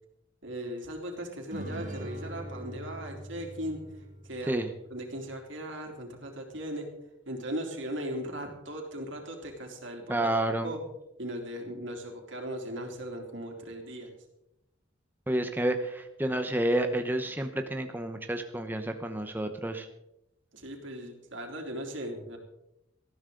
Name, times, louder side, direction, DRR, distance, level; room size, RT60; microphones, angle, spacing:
voice 1, 0.4-3.8 4.2-4.6 4.9-6.9 7.3-10.3 10.6-10.8 11.2-14.1 20.5-22.4, right 1 dB, 80° right, 2 dB, 3.3 m, -38 dB
sound 1, 1.5-5.1, right 1 dB, 40° right, 1.7 m, -42 dB
voice 2, 10.1-10.7 15.3-19.9, right 1 dB, 10° right, 6 dB, 0.8 m, -30 dB
19.0 x 14.0 x 3.9 m, 0.85 s
head